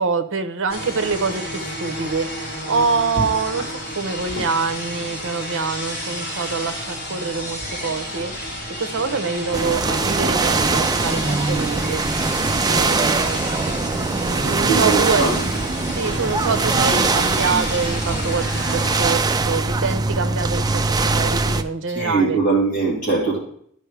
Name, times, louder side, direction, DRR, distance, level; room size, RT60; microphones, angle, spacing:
voice 1, 0.0-8.3 8.8-12.0 12.6-15.4 15.9-18.4 18.7-20.7 21.0-22.4, right 4 dB, 60° right, 8 dB, 0.8 m, -25 dB
sound 1, 0.7-19.2, equal, 55° left, 3.7 m, -30 dB
sound 2, 9.5-21.6, right 3 dB, 20° right, 0.4 m, -22 dB
voice 2, 14.4-15.4 21.9-23.4, right 4 dB, 40° left, -5 dB, 3.0 m, -21 dB
12.5 x 5.3 x 3.3 m, 0.65 s
head